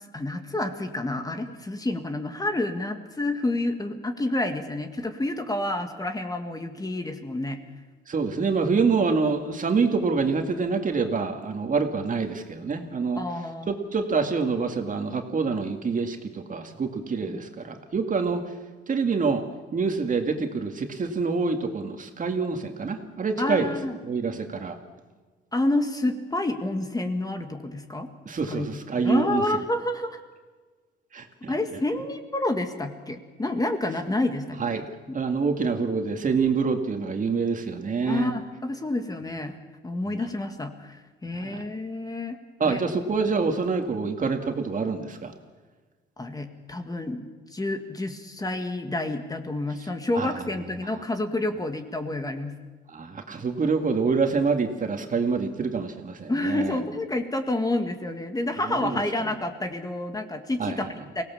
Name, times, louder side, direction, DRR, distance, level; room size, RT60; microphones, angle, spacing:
voice 1, 0.1-7.6 13.1-13.7 17.2-17.4 17.7-17.8 23.4-24.0 25.5-28.1 28.5-30.2 31.5-35.2 38.1-39.6 39.8-42.8 46.2-52.5 56.3-61.2, left 2 dB, 20° left, 6 dB, 1.8 m, -29 dB
voice 2, 8.1-13.2 13.7-18.5 18.9-19.4 19.7-23.7 24.1-24.8 28.3-29.4 31.1-31.5 34.6-34.8 35.1-38.3 40.1-40.2 41.3-41.6 42.6-45.3 50.2-50.3 50.8-51.0 52.9-56.8 58.7-59.3 60.6-60.9, right 4 dB, 40° right, 4 dB, 2.1 m, -26 dB
23.5 x 17.5 x 7.2 m, 1.4 s
cardioid pair, 90°, 20 cm